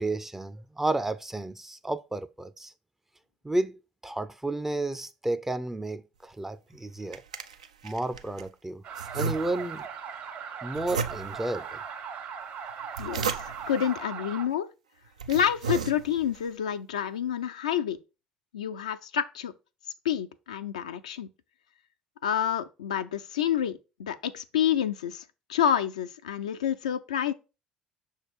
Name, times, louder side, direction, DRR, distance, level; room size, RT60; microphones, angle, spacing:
voice 1, 0.0-2.7 3.4-7.2 7.8-8.8 9.1-9.8 10.6-11.8, right 2 dB, 10° right, 0.4 m, -32 dB
sound 1, 6.7-8.5 8.9-9.9 10.7-11.6 12.7-13.8 14.5-14.6 15.1-16.4, right 5 dB, 80° right, 0.4 m, -34 dB
sound 2, 8.8-14.4, right 7 dB, 55° right, 1.3 m, -39 dB
voice 2, 13.0-14.7 15.3-18.0 18.5-19.5 20.0-21.3 22.2-25.2 25.5-27.3, left 9 dB, 75° left, 0.4 m, -28 dB
6.3 x 3.3 x 4.6 m
figure-of-eight pair, 55°, 4 cm